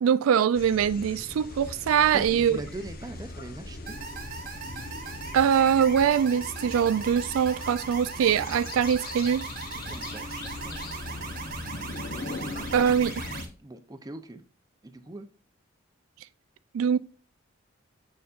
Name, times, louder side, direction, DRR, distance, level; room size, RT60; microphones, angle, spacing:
voice 1, 0.0-2.6 5.3-9.4 12.7-13.2 16.7-17.0, right 8 dB, 80° right, 0.3 m, -23 dB
sound 1, 0.5-13.5, left 2 dB, 45° left, 0.8 m, -39 dB
voice 2, 2.1-4.0 9.9-10.9 13.6-14.4 14.8-15.3, right 2 dB, 20° right, 0.5 m, -41 dB
sound 2, 3.9-13.5, right 5 dB, 45° right, 1.1 m, -39 dB
6.8 x 6.6 x 2.5 m
head